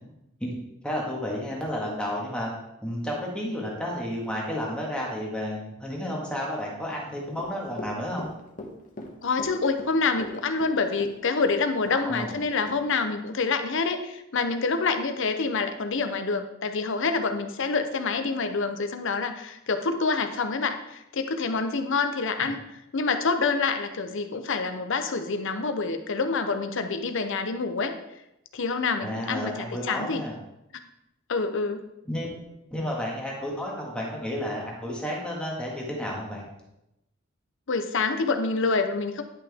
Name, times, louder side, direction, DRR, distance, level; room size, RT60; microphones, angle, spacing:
voice 1, 0.8-2.5 2.8-8.3 11.9-12.4 22.4-22.5 29.0-30.3 32.1-32.3 32.7-36.4, equal, 5° left, -3 dB, 1.8 m, -31 dB
Run / Walk footsteps, 7.3-12.4 12.7-12.8, left 1 dB, 40° left, 1.2 m, -40 dB
voice 2, 9.2-22.6 22.9-27.9 28.5-30.2 31.3-31.8 37.7-39.2, left 4 dB, 65° left, 8 dB, 0.8 m, -27 dB
10.5 x 5.8 x 3.6 m, 0.87 s
head